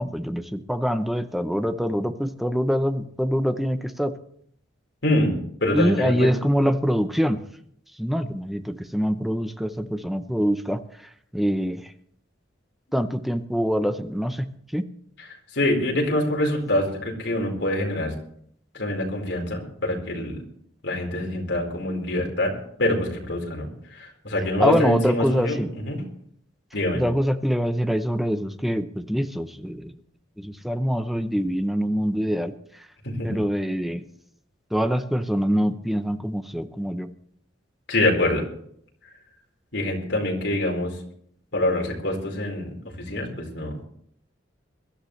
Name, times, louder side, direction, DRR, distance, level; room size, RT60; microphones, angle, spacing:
voice 1, 0.0-4.1 5.7-7.4 8.0-10.8 11.3-11.9 12.9-14.9 24.6-25.7 26.9-29.9 30.4-32.5 33.2-34.1 34.7-37.1, equal, ahead, 9 dB, 0.8 m, -24 dB
voice 2, 5.6-6.3 15.2-18.1 18.7-20.4 20.8-26.0 26.7-27.0 33.0-33.4 37.9-38.4 39.7-41.0 41.5-43.8, left 1 dB, 65° left, 0 dB, 4.5 m, -25 dB
22.5 x 13.0 x 3.3 m, 0.65 s
head